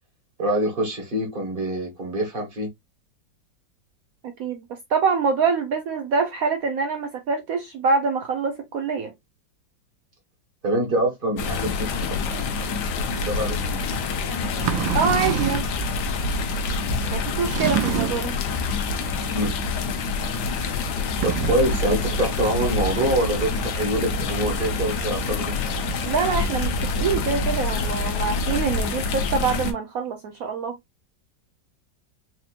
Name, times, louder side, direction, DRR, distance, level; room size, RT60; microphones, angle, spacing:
voice 1, 0.4-2.7 10.6-13.8 19.3-19.5 21.2-25.5, right 1 dB, 30° right, 1.5 m, -25 dB
voice 2, 4.9-9.1 14.9-15.7 17.1-18.3 26.0-30.8, right 5 dB, 70° right, 0.8 m, -25 dB
sound 1, 11.4-29.7, left 4 dB, 70° left, 1.2 m, -26 dB
sound 2, 14.5-15.8 17.5-18.4 21.1-21.7, right 8 dB, 90° right, 1.4 m, -26 dB
sound 3, 21.6-29.3, right 1 dB, 40° left, 0.9 m, -36 dB
4.3 x 2.8 x 2.4 m
omnidirectional pair, 2.0 m